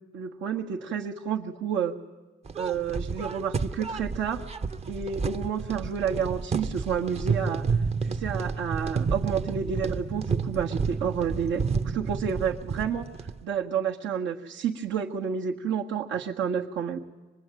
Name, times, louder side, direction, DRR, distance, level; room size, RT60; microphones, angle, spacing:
voice 1, 0.1-2.0 2.6-4.4 4.9-17.0, right 7 dB, 75° right, -2 dB, 1.5 m, -30 dB
sound 1, 2.5-13.4, right 5 dB, 35° right, 0.8 m, -30 dB
25.0 x 20.5 x 9.1 m, 1.3 s
cardioid pair, 100°, 20 cm